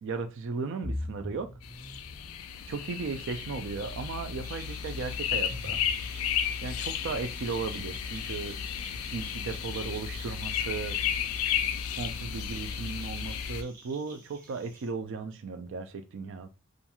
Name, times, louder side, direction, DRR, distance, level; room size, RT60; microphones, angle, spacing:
voice 1, 0.0-1.5 2.7-5.8 6.6-8.6 8.9-11.0 11.9-16.5, right 4 dB, 60° right, 8 dB, 0.4 m, -36 dB
sound 1, 0.8-6.8, left 1 dB, 10° left, 0.6 m, -43 dB
sound 2, 1.6-13.6, left 8 dB, 70° left, 0.3 m, -33 dB
sound 3, 4.4-14.9, right 4 dB, 45° right, 0.9 m, -52 dB
2.4 x 2.3 x 2.8 m, 0.32 s
head